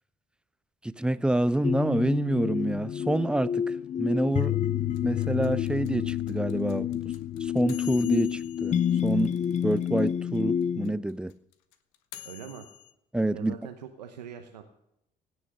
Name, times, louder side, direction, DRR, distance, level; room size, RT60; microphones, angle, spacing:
voice 1, 0.8-3.6 4.0-4.6 5.0-7.0 7.4-9.4 9.6-11.3 13.1-13.5, right 1 dB, 5° right, 0.6 m, -27 dB
sound 1, 1.6-10.9, left 9 dB, 35° left, 0.7 m, -29 dB
sound 2, 4.9-10.1 10.3-10.4 10.6-12.9, left 14 dB, 70° left, 1.0 m, -47 dB
voice 2, 12.2-12.7 13.3-14.6, right 8 dB, 85° right, 0.9 m, -42 dB
17.0 x 6.4 x 10.0 m
hypercardioid pair, 50°, 20 cm